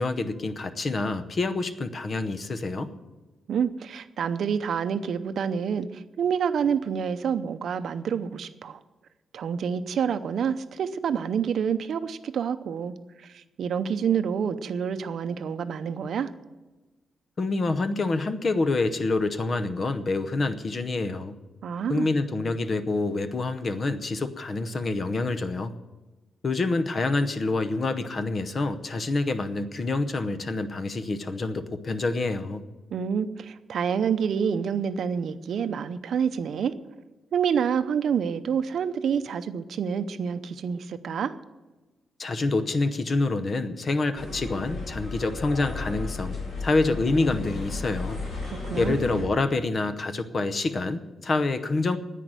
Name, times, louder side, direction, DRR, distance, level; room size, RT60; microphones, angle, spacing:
voice 1, 0.0-2.9 17.4-21.3 21.9-25.7 26.4-32.6 42.2-48.2 48.8-52.0, left 3 dB, 35° left, 10 dB, 0.8 m, -27 dB
voice 2, 3.5-8.8 9.3-12.9 13.2-16.3 21.6-22.1 32.9-36.7 37.3-41.3 48.5-49.0, right 7 dB, 65° right, 11 dB, 0.6 m, -28 dB
sound 1, 44.1-49.2, left 2 dB, 65° left, 4.4 m, -34 dB
10.5 x 9.1 x 8.9 m, 1.2 s
wide cardioid pair, 170°, 0 cm